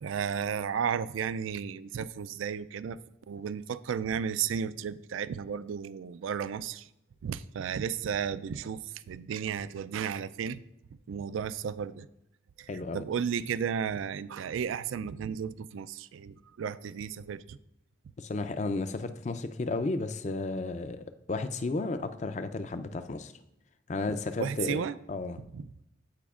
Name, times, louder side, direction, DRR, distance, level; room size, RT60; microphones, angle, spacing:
voice 1, 0.0-3.0 3.3-6.9 7.2-10.6 11.1-12.1 12.6-17.6 24.4-25.0 25.5-25.7, right 7 dB, 90° right, 16 dB, 0.3 m, -33 dB
voice 2, 12.7-13.0 18.2-23.3 23.9-24.8 25.1-25.4, left 3 dB, 35° left, 10 dB, 0.4 m, -33 dB
15.0 x 5.0 x 2.4 m, 0.86 s
head